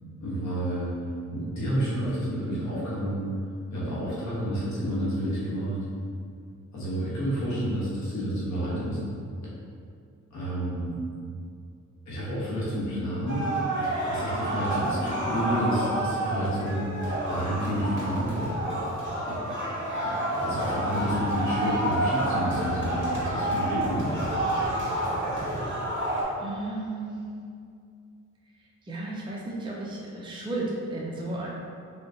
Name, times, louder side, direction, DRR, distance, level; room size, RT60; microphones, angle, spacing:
voice 1, 0.2-0.9 1.3-3.2 3.7-5.8 6.7-9.0 9.4-9.5 10.3-11.0 12.1-18.3 19.2-19.4 20.0-24.2, equal, 70° left, -8 dB, 1.1 m, -30 dB
sound 1, 13.3-26.2, right 1 dB, 40° right, 1.3 m, -29 dB
voice 2, 26.4-27.2 28.4-31.5, right 2 dB, 15° right, -5 dB, 0.5 m, -34 dB
3.7 x 3.3 x 2.7 m, 2.4 s
cardioid pair, 90°, 30 cm